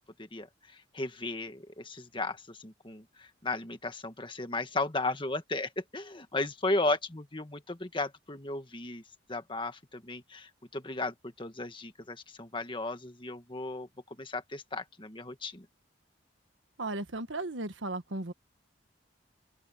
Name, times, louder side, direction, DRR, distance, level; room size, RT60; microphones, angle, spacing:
voice 1, 0.9-9.0 9.3-13.9 14.2-15.6, left 2 dB, 25° left, 1.6 m, -35 dB
voice 2, 16.8-18.3, right 2 dB, 85° right, 1.5 m, -35 dB
open air
head